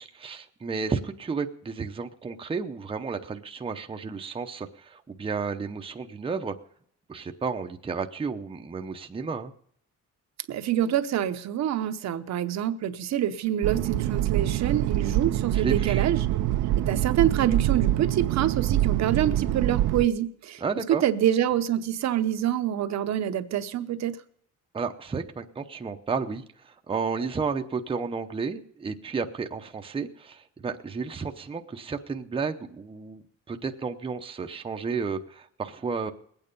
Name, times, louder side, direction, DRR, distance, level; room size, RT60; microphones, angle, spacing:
voice 1, 0.0-6.5 7.1-9.5 15.5-16.1 20.6-21.0 24.7-36.1, right 5 dB, 20° right, 5 dB, 0.8 m, -32 dB
voice 2, 10.5-16.3 16.8-24.2, right 11 dB, 60° right, 9 dB, 0.9 m, -26 dB
sound 1, 13.6-20.0, right 14 dB, 85° right, 0.7 m, -25 dB
20.5 x 9.0 x 5.4 m, 0.66 s
cardioid pair, 150°, 31 cm